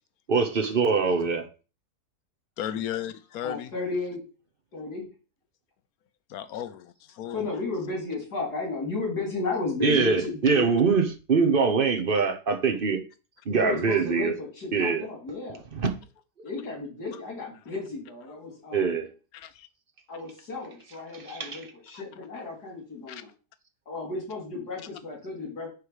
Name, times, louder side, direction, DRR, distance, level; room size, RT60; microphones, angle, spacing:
voice 1, 0.3-1.4 9.8-13.0 13.5-14.3 14.7-15.0 15.7-15.9 18.7-19.1 21.1-21.7, right 5 dB, 40° right, 1.0 m, -23 dB
voice 2, 2.6-3.7 6.3-7.5 19.3-19.7 21.9-22.0 23.1-23.2, left 10 dB, 70° left, 1.2 m, -35 dB
voice 3, 3.4-4.2 4.7-5.1 7.3-10.7 13.5-15.6 16.4-19.0 20.1-23.3 23.9-25.7, left 3 dB, 90° left, 3.5 m, -33 dB
9.6 x 3.4 x 4.9 m
omnidirectional pair, 1.7 m